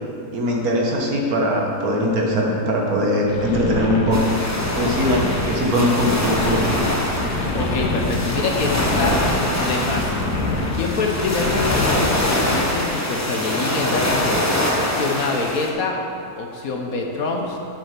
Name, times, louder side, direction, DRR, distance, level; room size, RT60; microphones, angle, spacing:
voice 1, 0.3-4.3 4.7-6.9, equal, 65° right, -1 dB, 1.8 m, -21 dB
sound 1, 3.3-12.6, left 2 dB, 90° left, 1.7 m, -26 dB
sound 2, 4.1-15.7, left 1 dB, 15° left, 0.7 m, -24 dB
voice 2, 7.5-9.2 9.5-10.2 10.7-14.4 14.8-16.0 16.4-17.6, left 4 dB, 65° left, 1 dB, 1.4 m, -26 dB
8.1 x 7.0 x 5.9 m, 2.6 s
omnidirectional pair, 1.7 m